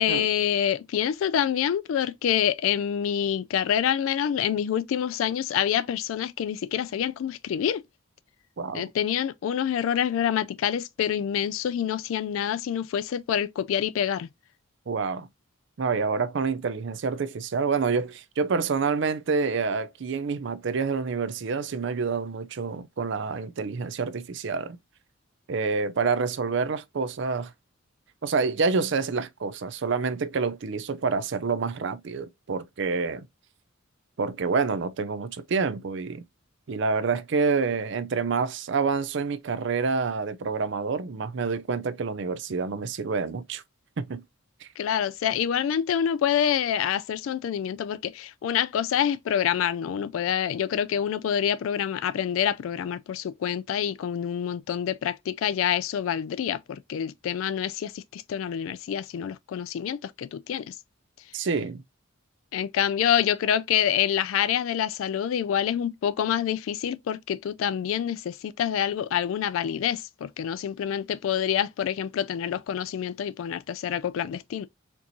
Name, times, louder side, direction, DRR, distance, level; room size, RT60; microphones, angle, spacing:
voice 1, 0.0-7.8 8.7-14.3 44.8-60.7 62.5-74.7, left 9 dB, 80° left, 0.3 m, -27 dB
voice 2, 8.6-8.9 14.9-15.3 15.8-24.8 25.5-27.5 28.2-33.3 34.2-36.2 36.7-43.6 44.0-44.2 44.6-44.7 61.3-61.8, right 4 dB, 60° right, 0.5 m, -27 dB
4.4 x 2.9 x 2.6 m
head